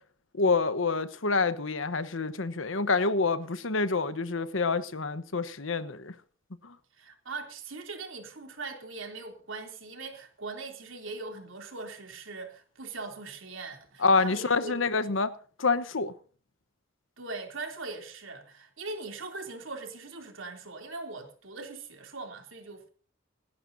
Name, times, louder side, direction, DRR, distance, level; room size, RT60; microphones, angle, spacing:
voice 1, 0.3-6.1 6.6-6.7 14.0-15.3 15.6-16.1, left 4 dB, 80° left, 1.1 m, -27 dB
voice 2, 7.0-14.8 17.2-22.9, right 3 dB, 80° right, 3.2 m, -41 dB
28.0 x 11.0 x 2.8 m
head